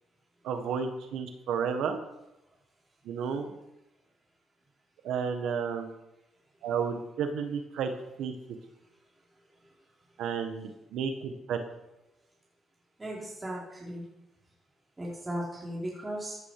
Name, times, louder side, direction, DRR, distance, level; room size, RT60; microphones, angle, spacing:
voice 1, 0.4-2.0 3.0-3.5 5.0-5.9 6.6-7.9 8.2-8.3 10.2-11.6, right 6 dB, 80° right, 6 dB, 1.6 m, -32 dB
voice 2, 13.0-14.1 15.0-16.4, right 1 dB, 20° right, -5 dB, 4.4 m, -36 dB
15.0 x 9.8 x 5.0 m, 0.91 s
cardioid pair, 100°, 0 cm